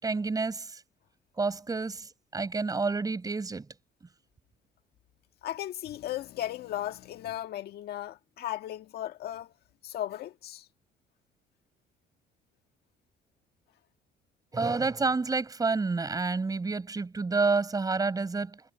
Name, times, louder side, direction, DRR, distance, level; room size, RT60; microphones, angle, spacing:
voice 1, 0.0-0.8 1.4-3.6 14.5-18.7, right 3 dB, 20° right, 6.6 m, -29 dB
voice 2, 5.4-9.5 9.8-10.7, left 12 dB, 70° left, 1.7 m, -36 dB
cardioid pair, 110°, 17 cm